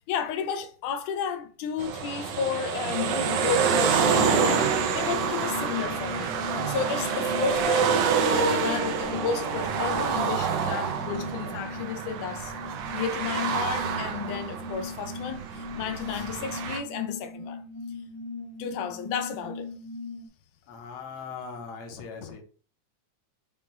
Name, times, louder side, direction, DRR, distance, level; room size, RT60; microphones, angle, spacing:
voice 1, 0.1-6.3 6.7-8.0 8.3-12.5 12.9-17.6 18.6-19.7, left 7 dB, 85° left, 2.1 m, -32 dB
sound 1, 1.8-16.8, right 6 dB, 75° right, 1.5 m, -27 dB
sound 2, 3.8-20.3, left 3 dB, 25° left, 0.5 m, -40 dB
voice 2, 20.7-22.4, left 5 dB, 65° left, 1.9 m, -40 dB
5.8 x 2.4 x 3.8 m
omnidirectional pair, 3.5 m